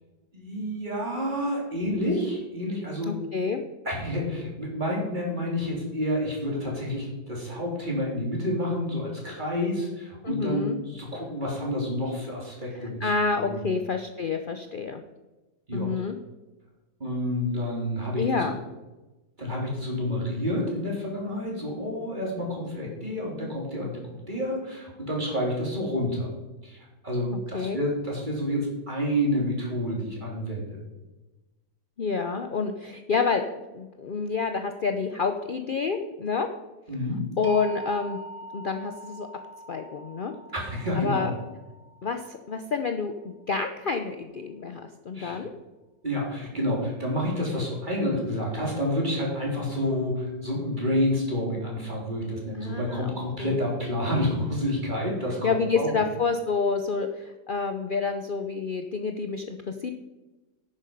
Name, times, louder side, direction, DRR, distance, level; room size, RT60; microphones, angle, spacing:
voice 1, 0.3-3.2 3.9-13.1 13.4-13.6 15.7-16.1 17.0-18.5 19.4-26.3 26.6-30.8 36.9-37.3 40.5-41.3 45.1-45.4 46.0-55.9, left 1 dB, 25° right, -2 dB, 3.6 m, -29 dB
voice 2, 3.1-3.6 10.2-10.8 12.8-15.0 15.7-16.2 18.2-18.6 27.5-27.8 32.0-33.4 33.7-36.5 37.4-38.2 38.5-39.3 39.7-40.3 41.0-41.3 42.0-45.5 52.6-53.0 53.4-53.5 55.4-59.9, left 5 dB, 60° left, 6 dB, 0.5 m, -28 dB
sound 1, 37.4-43.4, equal, 45° right, 1.9 m, -44 dB
10.5 x 9.1 x 5.4 m, 1.1 s
omnidirectional pair, 1.8 m